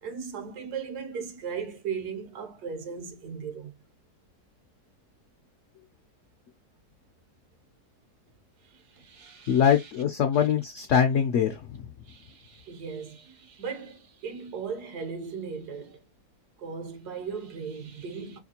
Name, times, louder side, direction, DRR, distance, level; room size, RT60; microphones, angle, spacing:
voice 1, 0.0-3.7 8.6-9.9 10.3-10.5 12.0-16.0 16.6-18.4, right 6 dB, 75° right, 1.3 m, -37 dB
voice 2, 9.5-11.6, left 8 dB, 70° left, 0.7 m, -23 dB
5.0 x 2.4 x 2.8 m
omnidirectional pair, 1.7 m